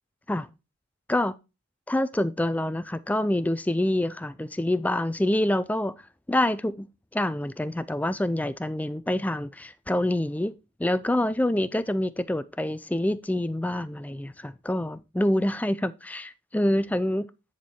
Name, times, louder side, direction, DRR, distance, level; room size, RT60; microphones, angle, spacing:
voice 1, 1.9-6.0 6.3-6.9 7.1-10.5 10.8-17.3, left 1 dB, 10° left, 0.3 m, -26 dB
10.0 x 4.6 x 4.3 m
head